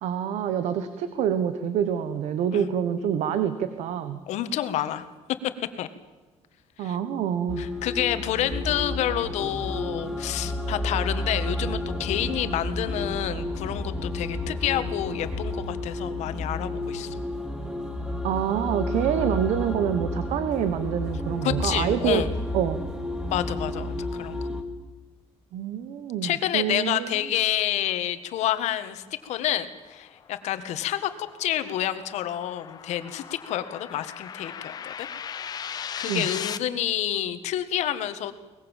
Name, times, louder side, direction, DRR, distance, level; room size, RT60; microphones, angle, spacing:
voice 1, 0.0-4.2 6.8-7.7 18.2-22.2 22.5-22.8 25.5-27.2 36.0-36.3, right 9 dB, 75° right, 11 dB, 1.4 m, -26 dB
voice 2, 4.3-5.1 5.8-5.9 6.8-7.0 7.6-17.1 21.4-22.3 23.3-24.4 26.2-35.1 35.6-38.3, left 12 dB, 70° left, 10 dB, 1.7 m, -29 dB
sound 1, 7.5-24.6, left 1 dB, 5° right, 2.0 m, -31 dB
sound 2, 29.7-36.6, left 8 dB, 35° left, 0.9 m, -38 dB
23.0 x 20.5 x 7.3 m, 1.2 s
cardioid pair, 170°, 12 cm